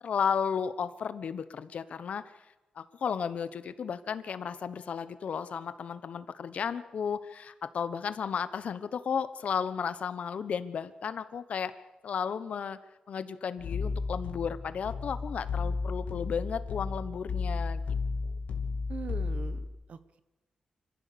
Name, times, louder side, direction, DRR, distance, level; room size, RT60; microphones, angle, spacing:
voice 1, 0.0-2.3 2.8-11.7 12.0-12.8 13.1-17.8, left 7 dB, 70° left, 13 dB, 1.1 m, -34 dB
sound 1, 13.6-19.7, left 4 dB, 85° left, 2.5 m, -33 dB
voice 2, 18.9-20.2, right 6 dB, 65° right, 12 dB, 1.3 m, -42 dB
26.0 x 15.0 x 6.9 m, 1.0 s
wide cardioid pair, 120°, 2 cm